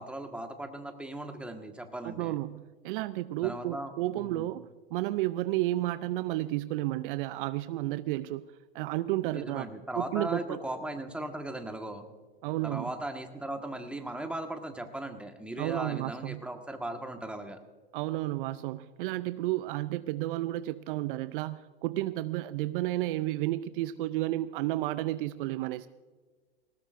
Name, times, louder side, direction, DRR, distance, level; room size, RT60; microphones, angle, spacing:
voice 1, 0.0-2.3 3.4-4.5 9.3-12.1 12.6-17.6, right 1 dB, 5° right, 5 dB, 1.5 m, -38 dB
voice 2, 2.0-4.7 4.9-8.4 8.7-9.6 10.0-10.6 12.4-12.9 15.6-16.4 17.9-25.9, right 16 dB, 55° right, 15 dB, 0.5 m, -32 dB
19.0 x 18.5 x 2.6 m, 1.4 s
hypercardioid pair, 100°, 31 cm